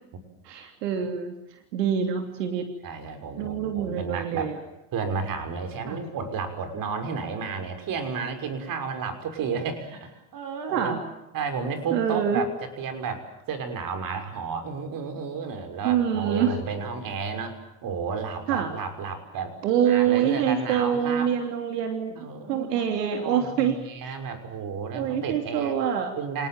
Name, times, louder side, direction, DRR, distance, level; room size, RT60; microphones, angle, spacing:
voice 1, 0.4-2.7 3.4-4.6 5.9-6.0 10.7-11.0 11.9-12.4 15.8-16.6 18.5-18.7 19.6-23.8 24.0-24.1 24.9-26.1, right 8 dB, 85° right, 5 dB, 3.2 m, -25 dB
voice 2, 2.8-4.5 4.9-11.0 11.3-19.5 19.8-21.3 22.2-22.9 23.2-25.8 26.2-26.5, right 5 dB, 45° right, 8 dB, 6.1 m, -32 dB
27.5 x 19.5 x 9.0 m, 0.93 s
hypercardioid pair, 100°, 47 cm